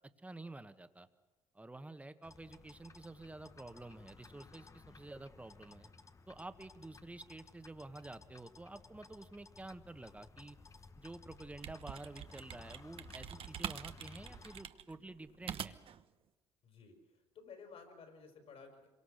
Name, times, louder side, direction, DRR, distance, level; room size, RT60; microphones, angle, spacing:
voice 1, 0.2-1.1 1.5-5.9 6.3-10.6 11.0-15.8, right 2 dB, 10° right, 10 dB, 1.4 m, -50 dB
sound 1, 2.2-14.6, left 4 dB, 25° left, 1.1 m, -58 dB
sound 2, 11.3-16.0, right 9 dB, 50° right, 1.0 m, -45 dB
voice 2, 16.6-18.9, left 5 dB, 55° left, 5 dB, 5.3 m, -55 dB
26.0 x 23.5 x 6.6 m, 1.2 s
cardioid pair, 100°, 12 cm